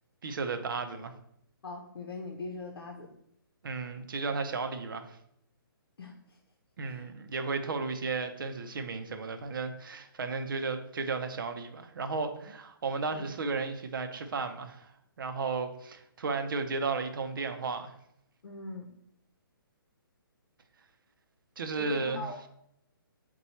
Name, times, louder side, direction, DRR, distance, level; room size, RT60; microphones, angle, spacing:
voice 1, 0.2-1.1 3.6-5.2 6.8-14.9 15.2-17.9 21.6-22.3, right 4 dB, 60° right, 7 dB, 0.6 m, -34 dB
voice 2, 1.6-3.1 6.0-6.4 6.8-7.1 13.1-13.2 18.4-18.9 21.7-22.5, left 3 dB, 85° left, 0 dB, 0.7 m, -41 dB
4.1 x 2.3 x 4.3 m, 0.75 s
hypercardioid pair, 170°, 12 cm